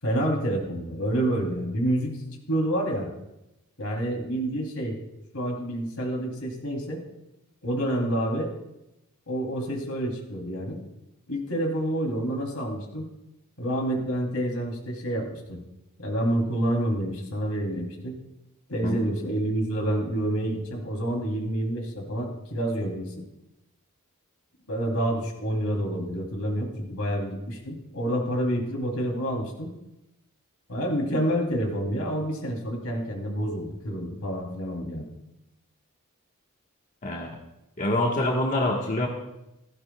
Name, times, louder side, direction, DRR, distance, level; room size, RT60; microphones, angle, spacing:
voice 1, 0.0-2.2 2.5-3.1 3.8-5.0 5.3-7.0 7.6-8.5 9.3-10.8 11.3-13.1 13.6-15.6 16.0-18.2 18.7-23.1 24.7-29.7 30.7-35.1, right 1 dB, 85° left, 1 dB, 3.1 m, -28 dB
voice 2, 37.0-37.4 37.8-39.1, left 1 dB, 35° left, -1 dB, 1.3 m, -25 dB
16.5 x 15.0 x 2.3 m, 0.90 s
head